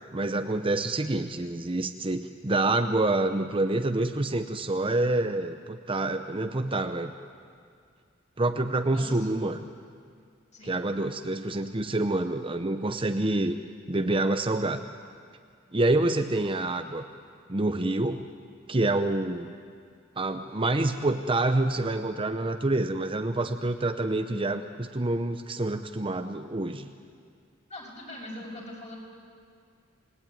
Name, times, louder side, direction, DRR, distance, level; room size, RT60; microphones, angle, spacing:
voice 1, 0.1-7.1 8.4-9.6 10.6-13.6 13.9-14.8 15.7-17.0 17.5-18.3 18.7-19.5 20.2-26.9, right 2 dB, 25° right, 7 dB, 0.8 m, -27 dB
voice 2, 8.9-9.3 10.5-10.8 27.7-29.0, left 1 dB, 35° left, -1 dB, 6.2 m, -42 dB
27.5 x 20.0 x 9.3 m, 2.1 s
head